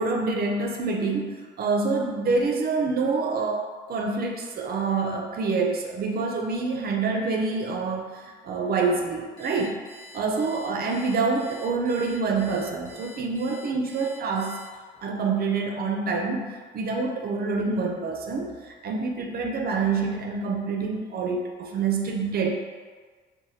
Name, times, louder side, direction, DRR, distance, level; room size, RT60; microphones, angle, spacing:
voice 1, 0.0-9.8 10.1-14.6 15.0-16.5 16.7-22.5, right 4 dB, 50° right, 2 dB, 0.4 m, -26 dB
Alarm, 9.4-15.0, left 1 dB, 90° left, 0.8 m, -47 dB
3.0 x 2.1 x 2.7 m, 1.5 s
cardioid pair, 90°, 20 cm